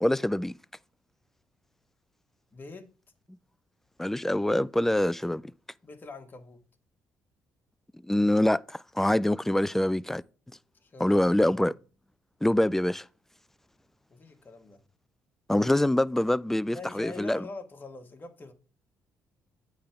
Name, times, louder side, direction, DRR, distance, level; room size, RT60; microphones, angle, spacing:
voice 1, 0.0-0.5 4.0-5.4 8.0-10.2 11.0-11.8 12.4-13.0 15.5-17.4, left 1 dB, 5° left, 0.3 m, -25 dB
voice 2, 2.5-2.9 5.8-6.6 10.8-11.6 14.1-14.8 16.7-18.5, left 3 dB, 35° left, 1.4 m, -44 dB
8.6 x 3.4 x 5.6 m
supercardioid pair, 70°, 6 cm